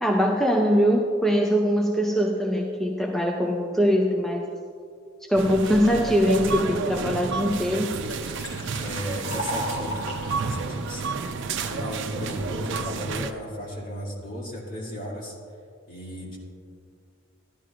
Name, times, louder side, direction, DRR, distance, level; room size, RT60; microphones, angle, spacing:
voice 1, 0.0-4.5 5.2-8.0, equal, ahead, 0 dB, 0.5 m, -22 dB
sound 1, 5.3-13.3, right 4 dB, 60° right, 0.5 m, -31 dB
Liquid, 8.0-11.7 12.3-12.8, equal, 75° left, 2.3 m, -36 dB
voice 2, 8.8-11.2 11.6-15.3 15.9-16.4, equal, 40° left, -5 dB, 2.4 m, -35 dB
14.0 x 11.0 x 2.5 m, 2.3 s
head